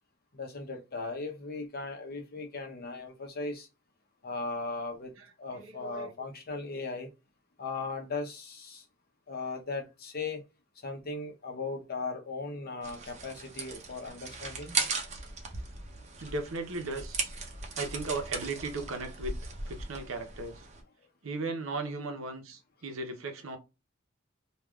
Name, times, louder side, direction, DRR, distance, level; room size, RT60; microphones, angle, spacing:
voice 1, 0.3-3.7 4.2-7.1 7.6-8.8 9.3-10.4 10.8-14.7, left 3 dB, 50° left, 0.8 m, -38 dB
voice 2, 5.6-6.1 16.2-17.3 17.8-19.3 19.7-20.5 21.2-23.6, right 3 dB, 80° right, 0.8 m, -36 dB
sound 1, 12.8-20.8, right 4 dB, 35° right, 0.7 m, -38 dB
3.3 x 2.4 x 2.3 m
head